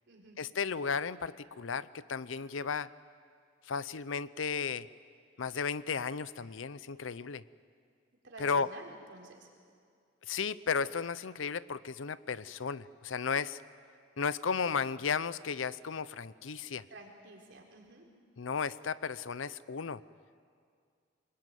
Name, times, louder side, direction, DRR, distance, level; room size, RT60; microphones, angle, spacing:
voice 1, 0.4-2.9 3.7-4.9 5.4-7.4 8.4-8.7 10.3-13.6 14.2-16.8 18.4-20.0, left 5 dB, 75° left, 17 dB, 0.6 m, -34 dB
voice 2, 8.2-9.5 16.9-18.0, right 2 dB, 60° right, 0 dB, 4.2 m, -51 dB
24.5 x 21.0 x 9.3 m, 2.2 s
head